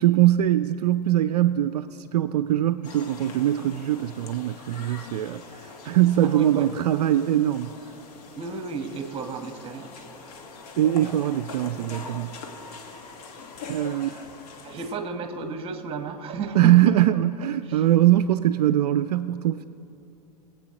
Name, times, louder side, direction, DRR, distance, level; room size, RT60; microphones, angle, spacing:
voice 1, 0.0-7.7 10.8-12.4 13.7-14.3 16.6-19.6, right 13 dB, 70° right, 0.4 m, -22 dB
sound 1, 2.8-15.0, left 4 dB, 60° left, 1.5 m, -43 dB
voice 2, 6.2-6.7 8.4-10.1 13.8-14.1 14.6-17.1 17.6-17.9, right 5 dB, 25° right, 1.2 m, -33 dB
22.0 x 8.2 x 2.9 m
figure-of-eight pair, 90°, 21 cm